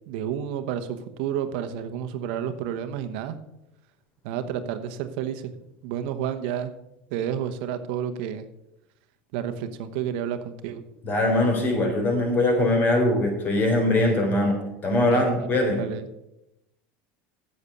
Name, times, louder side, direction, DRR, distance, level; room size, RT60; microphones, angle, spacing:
voice 1, 0.1-3.4 4.2-5.5 5.8-6.7 7.1-8.4 9.3-10.8 15.1-15.5 15.8-16.1, right 9 dB, 70° right, 9 dB, 1.0 m, -30 dB
voice 2, 11.0-15.8, left 1 dB, 35° left, 3 dB, 3.7 m, -22 dB
8.4 x 7.9 x 7.0 m, 0.88 s
supercardioid pair, 115°, 6 cm